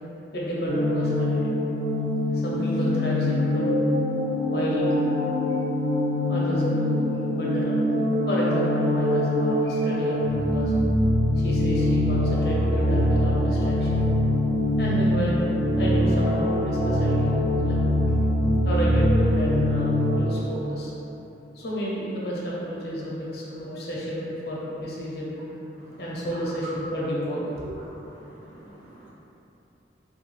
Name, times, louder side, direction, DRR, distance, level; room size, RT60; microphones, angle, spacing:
voice 1, 0.3-1.5 2.3-3.6 4.5-5.0 6.3-7.9 8.3-10.7 11.4-14.0 14.8-15.4 15.8-17.8 18.5-20.9 21.5-25.4 26.0-27.7, equal, 60° left, -6 dB, 0.6 m, -30 dB
sound 1, 0.7-20.2, left 1 dB, 75° right, 1.2 m, -23 dB
voice 2, 25.8-26.5 27.8-27.9 28.2-29.1, right 1 dB, 45° right, -11 dB, 0.8 m, -48 dB
2.4 x 2.3 x 3.0 m, 3.0 s
head